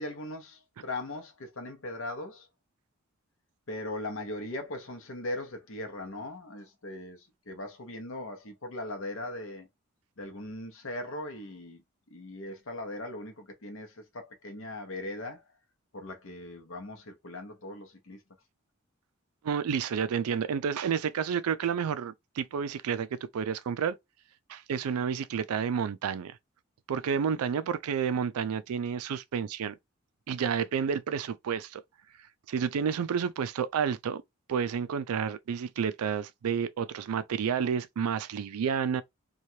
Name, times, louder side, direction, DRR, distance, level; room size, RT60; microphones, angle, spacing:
voice 1, 0.0-2.5 3.7-9.7 10.2-11.8 12.1-15.4 15.9-18.2, left 1 dB, 65° left, 0.8 m, -39 dB
voice 2, 19.4-24.0 24.5-26.4 26.9-29.7 30.3-31.8 32.5-34.2 34.5-39.0, right 7 dB, 90° right, 0.4 m, -30 dB
3.0 x 2.3 x 2.7 m
head